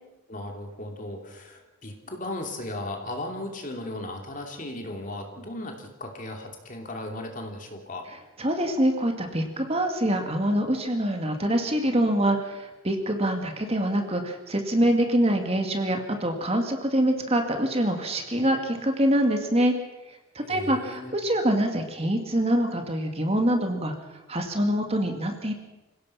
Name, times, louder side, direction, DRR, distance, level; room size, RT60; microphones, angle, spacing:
voice 1, 0.3-8.1 20.4-21.1, left 1 dB, 40° left, 3 dB, 2.9 m, -36 dB
voice 2, 8.4-19.7 20.4-23.9 24.3-25.5, right 1 dB, 30° right, 4 dB, 2.1 m, -25 dB
26.5 x 16.5 x 5.8 m, 1.0 s
head